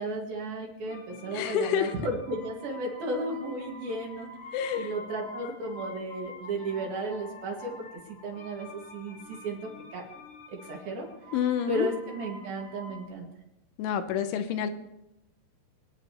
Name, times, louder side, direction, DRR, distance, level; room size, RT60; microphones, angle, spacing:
voice 1, 0.0-4.3 4.7-9.6 9.9-10.0 10.6-11.1 11.7-13.3, right 1 dB, 60° right, -1 dB, 3.5 m, -34 dB
sound 1, 0.9-13.1, left 1 dB, 55° left, 2.7 m, -47 dB
voice 2, 1.3-1.9 4.5-4.9 11.3-11.9 13.8-14.7, left 8 dB, 80° left, 8 dB, 3.2 m, -28 dB
26.5 x 9.7 x 3.0 m, 0.90 s
omnidirectional pair, 5.5 m